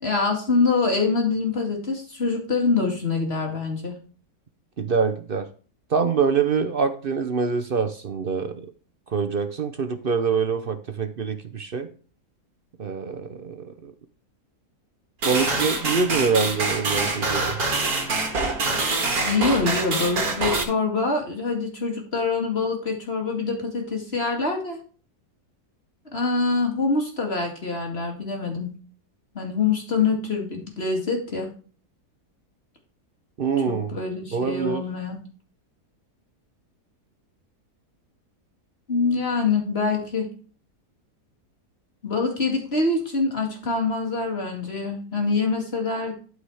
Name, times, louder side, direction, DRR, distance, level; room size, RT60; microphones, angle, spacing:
voice 1, 0.0-4.0 19.3-24.8 26.1-28.7 29.3-31.5 33.7-35.2 38.9-40.3 42.0-46.1, left 4 dB, 40° left, 2 dB, 2.5 m, -25 dB
voice 2, 4.8-5.5 5.9-8.7 9.1-11.9 12.8-13.9 15.2-17.6 33.4-34.0 34.3-34.8, right 5 dB, 45° right, 9 dB, 0.8 m, -25 dB
sound 1, 15.2-20.6, right 3 dB, 70° right, 2.2 m, -25 dB
12.0 x 4.9 x 4.8 m, 0.39 s
omnidirectional pair, 1.6 m